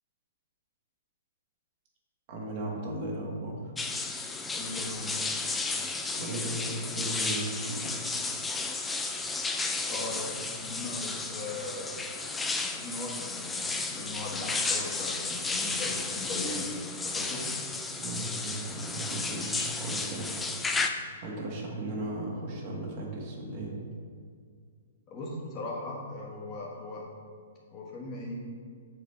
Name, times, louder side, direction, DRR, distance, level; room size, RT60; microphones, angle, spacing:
voice 1, 2.3-3.7 5.7-5.8 6.2-7.9 18.0-20.3 21.2-23.7, right 2 dB, 45° right, -2 dB, 1.4 m, -36 dB
sound 1, 3.8-20.9, left 3 dB, 10° left, 0.4 m, -33 dB
voice 2, 4.5-5.1 9.9-12.0 12.5-17.4 25.1-27.1 27.7-28.4, left 2 dB, 30° left, -3 dB, 1.4 m, -39 dB
6.6 x 4.8 x 3.2 m, 2.1 s
hypercardioid pair, 125°, 0 cm